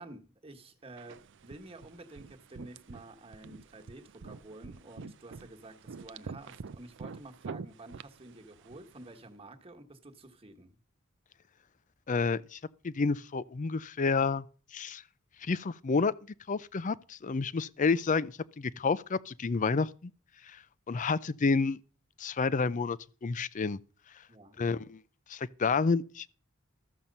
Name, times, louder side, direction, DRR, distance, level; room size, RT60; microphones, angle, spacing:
voice 1, 0.0-10.8 24.3-24.6, right 2 dB, 25° right, 1.5 m, -50 dB
sound 1, 1.0-9.2, right 4 dB, 55° right, 0.5 m, -47 dB
voice 2, 12.1-14.5 14.7-15.0 15.4-16.1 16.5-20.1 20.4-21.8 22.2-23.8 24.6-25.0 25.3-26.3, left 4 dB, 35° left, 0.5 m, -30 dB
13.5 x 7.4 x 5.4 m
head